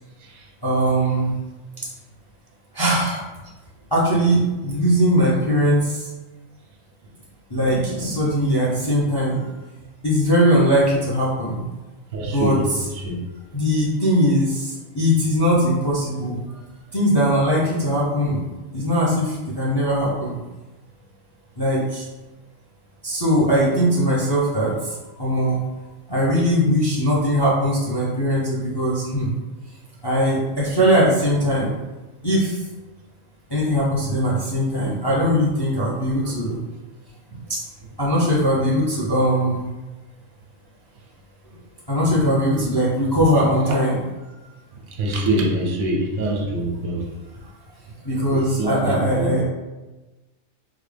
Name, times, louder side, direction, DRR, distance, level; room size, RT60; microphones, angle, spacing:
voice 1, 0.6-1.3 2.7-3.2 3.9-5.9 7.5-9.4 10.0-11.6 12.2-12.6 13.5-14.7 14.9-16.4 16.9-18.4 18.7-20.4 21.6-22.0 23.0-25.6 26.1-29.3 30.0-31.7 32.2-32.6 33.5-36.6 37.5-37.6 38.0-39.6 41.9-44.0 48.0-49.4, equal, 30° left, -6 dB, 0.4 m, -20 dB
voice 2, 7.6-8.2 12.1-12.7 12.9-13.2 26.2-26.4 36.2-36.3 37.3-37.4 41.5-41.6 42.0-42.2 42.6-42.7 43.7-43.8 44.9-47.1 48.3-49.4, right 1 dB, 90° right, 0 dB, 1.2 m, -26 dB
3.7 x 2.2 x 3.3 m, 1.1 s
omnidirectional pair, 1.4 m